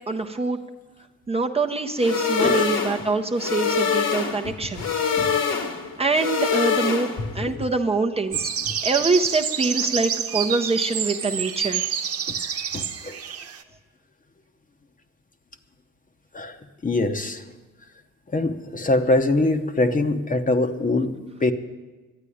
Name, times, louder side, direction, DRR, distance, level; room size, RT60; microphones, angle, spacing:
voice 1, 0.1-0.6 1.3-4.9 6.0-8.5 8.8-11.9, right 3 dB, 20° right, 3 dB, 0.7 m, -24 dB
sound 1, 2.0-7.4, left 6 dB, 60° left, 1.6 m, -25 dB
voice 2, 7.2-7.7 8.7-8.8 12.3-12.4 12.7-13.2 16.3-17.4 18.3-21.5, left 2 dB, 25° left, 8 dB, 0.9 m, -24 dB
sound 2, 8.3-13.6, right 8 dB, 50° right, 1.1 m, -28 dB
11.5 x 9.0 x 9.9 m, 1.2 s
cardioid pair, 90°, 30 cm